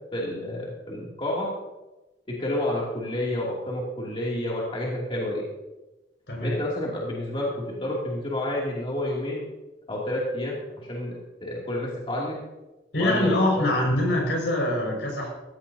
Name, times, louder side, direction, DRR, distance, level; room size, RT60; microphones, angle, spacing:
voice 1, 0.1-1.5 2.3-5.5 6.4-9.5 9.9-12.4 12.9-13.6, left 1 dB, 30° left, -4 dB, 2.7 m, -30 dB
voice 2, 6.3-6.6 12.9-15.3, left 1 dB, 80° left, -1 dB, 5.6 m, -24 dB
16.0 x 15.0 x 2.8 m, 1.1 s
head